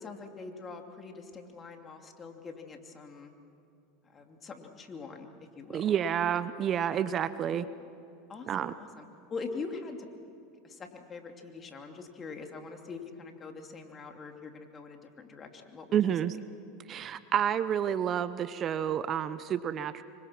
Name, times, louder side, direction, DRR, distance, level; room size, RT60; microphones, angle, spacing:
voice 1, 0.0-3.3 4.1-5.3 5.6-5.8 6.9-7.0 8.3-10.0 10.6-16.0, left 4 dB, 30° left, 4 dB, 2.9 m, -43 dB
voice 2, 5.7-7.7 8.5-8.7 15.9-16.4 16.9-20.0, right 9 dB, 40° right, 14 dB, 0.7 m, -29 dB
26.0 x 24.5 x 6.1 m, 2.7 s
hypercardioid pair, 100°, 0 cm